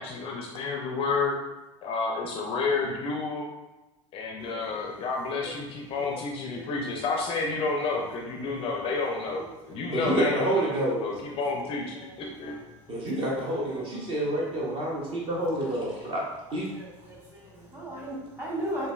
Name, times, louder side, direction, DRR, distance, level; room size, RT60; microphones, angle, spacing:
voice 1, 0.0-1.4 1.8-3.4 4.1-10.7 11.0-12.6, left 4 dB, 30° left, 0 dB, 0.4 m, -30 dB
voice 2, 4.4-6.2 6.5-6.7 8.4-8.9 9.3-9.8 11.1-11.2 11.5-12.5 13.4-13.8 16.7-18.9, right 1 dB, 15° right, -5 dB, 1.3 m, -40 dB
voice 3, 9.9-11.1 12.9-16.2 16.5-16.7, right 1 dB, 30° right, -3 dB, 0.7 m, -28 dB
4.8 x 2.2 x 2.2 m, 1.1 s
figure-of-eight pair, 80°, 18 cm